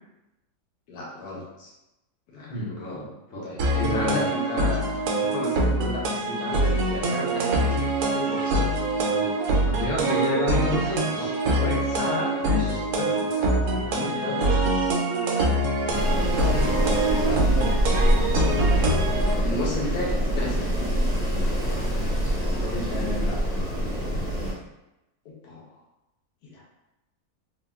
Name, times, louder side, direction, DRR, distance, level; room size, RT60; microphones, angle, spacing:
voice 1, 0.9-1.7 2.3-2.7 3.4-4.8 5.1-8.7 9.0-9.3 11.1-11.3 11.9-14.7 15.7-16.5 19.0-20.7 22.4-23.2 25.2-25.7 26.4-26.6, left 2 dB, 85° left, -3 dB, 1.2 m, -34 dB
voice 2, 2.5-4.4 9.6-12.0 12.4-12.8 16.3-17.7 22.9-23.4, left 1 dB, 55° left, -6 dB, 1.1 m, -30 dB
sound 1, 3.6-19.3, right 2 dB, 85° right, 1.1 m, -24 dB
Wind, 15.9-24.5, equal, 35° right, 0.7 m, -25 dB
3.5 x 2.2 x 2.3 m, 0.93 s
omnidirectional pair, 1.6 m